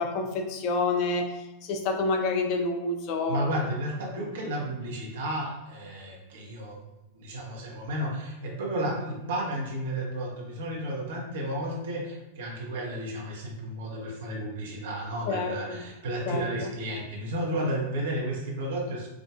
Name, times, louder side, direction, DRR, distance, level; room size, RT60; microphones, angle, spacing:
voice 1, 0.0-1.3 1.6-3.5 15.3-15.9 16.3-16.5, left 3 dB, 45° left, 4 dB, 0.5 m, -28 dB
voice 2, 3.3-6.8 7.1-19.1, right 1 dB, 55° right, -2 dB, 0.9 m, -32 dB
4.8 x 2.4 x 2.3 m, 1.0 s
figure-of-eight pair, 90°, 0 cm